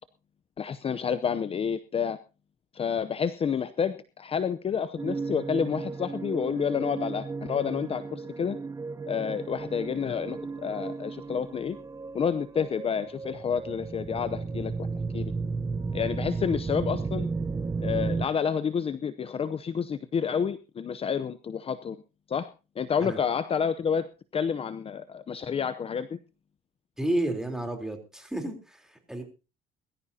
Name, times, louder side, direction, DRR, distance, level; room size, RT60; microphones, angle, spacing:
voice 1, 0.6-2.2 2.7-8.6 9.1-11.8 12.1-14.9 15.1-15.3 15.9-17.3 17.8-22.0 22.3-22.5 22.8-24.1 24.3-26.2, left 7 dB, 35° left, 13 dB, 0.7 m, -29 dB
sound 1, 5.0-18.3, right 4 dB, 20° right, 0.7 m, -34 dB
voice 2, 27.0-29.2, right 1 dB, 5° right, 4 dB, 3.6 m, -31 dB
22.0 x 14.0 x 2.8 m, 0.31 s
cardioid pair, 110°, 17 cm